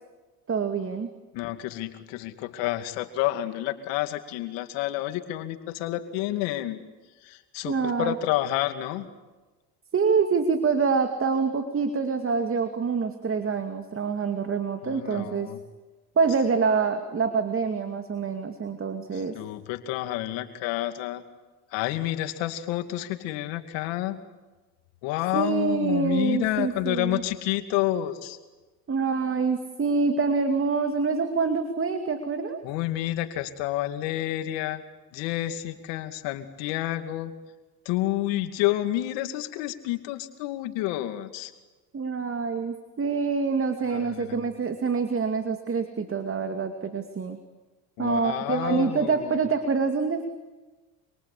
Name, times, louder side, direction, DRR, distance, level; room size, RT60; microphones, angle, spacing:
voice 1, 0.5-1.1 7.7-8.1 9.9-15.5 16.2-19.4 25.3-27.2 28.9-32.6 41.9-47.4 48.0-50.2, right 5 dB, 30° right, 7 dB, 2.5 m, -26 dB
voice 2, 1.3-6.8 7.2-9.1 14.8-15.6 19.1-21.2 21.7-24.2 25.0-28.4 32.6-34.8 35.1-37.3 37.8-41.5 43.9-44.4 48.0-49.4, left 15 dB, 80° left, 8 dB, 2.5 m, -29 dB
27.0 x 24.5 x 8.6 m, 1.2 s
supercardioid pair, 100°, 43 cm